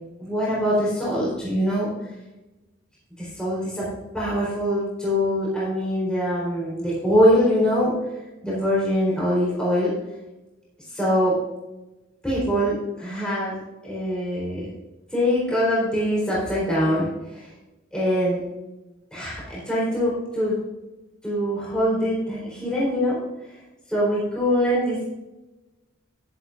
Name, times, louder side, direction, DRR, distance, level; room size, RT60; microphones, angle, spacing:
voice 1, 0.2-1.9 3.2-8.0 8.4-9.9 10.9-11.4 12.2-14.7 15.1-17.5 17.9-18.4 19.1-20.6 21.2-23.2 23.9-25.1, equal, 5° left, -7 dB, 3.9 m, -23 dB
11.5 x 11.0 x 2.5 m, 1.0 s
head